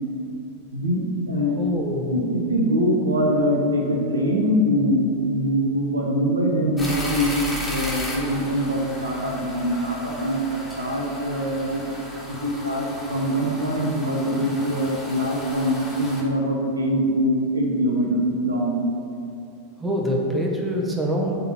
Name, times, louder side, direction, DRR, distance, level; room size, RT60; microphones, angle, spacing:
voice 1, 0.7-1.6 2.1-11.8 12.3-18.8, equal, 75° right, -1 dB, 1.1 m, -23 dB
voice 2, 1.6-2.2 19.8-21.4, equal, 10° right, -1 dB, 1.0 m, -25 dB
sound 1, 6.8-16.2, equal, 5° left, 1.7 m, -35 dB
7.2 x 3.9 x 5.9 m, 2.7 s
figure-of-eight pair, 90°, 0 cm